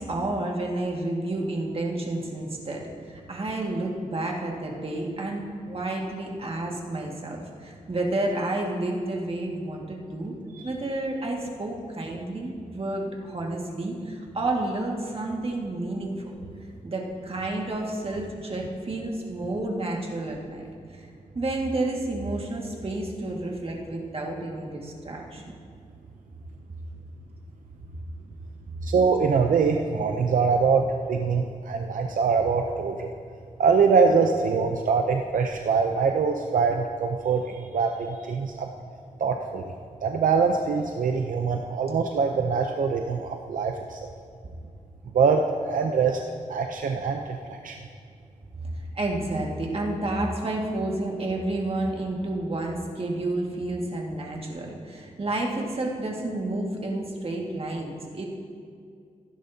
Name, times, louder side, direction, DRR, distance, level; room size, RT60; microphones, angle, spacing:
voice 1, 0.0-2.8 3.1-10.3 10.6-16.3 16.8-20.7 20.9-21.1 21.3-25.5 48.6-58.3, right 2 dB, 45° right, -1 dB, 2.0 m, -30 dB
voice 2, 28.8-33.1 33.6-38.7 39.2-39.6 40.0-44.1 45.1-46.2 46.5-47.8, right 5 dB, 75° right, 3 dB, 0.6 m, -23 dB
16.0 x 10.0 x 2.8 m, 2.3 s
cardioid pair, 65°, 14 cm